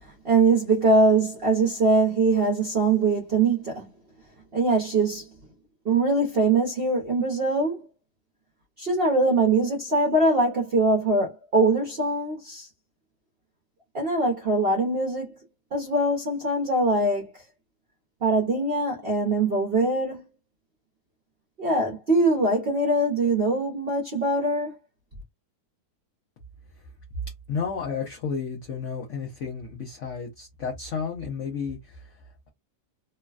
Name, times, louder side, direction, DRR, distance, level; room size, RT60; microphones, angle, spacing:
voice 1, 0.2-3.8 4.5-5.3 5.8-7.8 8.8-12.7 13.9-15.4 15.7-17.3 18.2-20.2 21.6-24.8, right 2 dB, 45° right, 0.9 m, -22 dB
voice 2, 27.5-32.5, left 6 dB, 60° left, 0.9 m, -32 dB
3.1 x 2.2 x 2.4 m
omnidirectional pair, 1.7 m